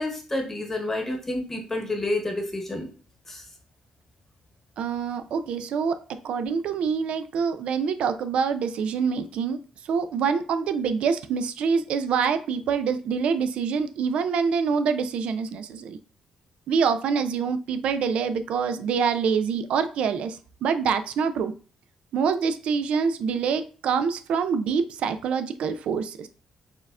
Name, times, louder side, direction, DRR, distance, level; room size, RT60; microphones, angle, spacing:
voice 1, 0.0-2.9 3.3-3.4, left 2 dB, 15° left, 2 dB, 1.0 m, -29 dB
voice 2, 4.8-6.0 6.2-9.6 9.9-16.0 16.7-21.5 22.1-26.3, right 6 dB, 70° right, 10 dB, 0.3 m, -25 dB
4.4 x 3.5 x 2.4 m, 0.38 s
cardioid pair, 140°, 2 cm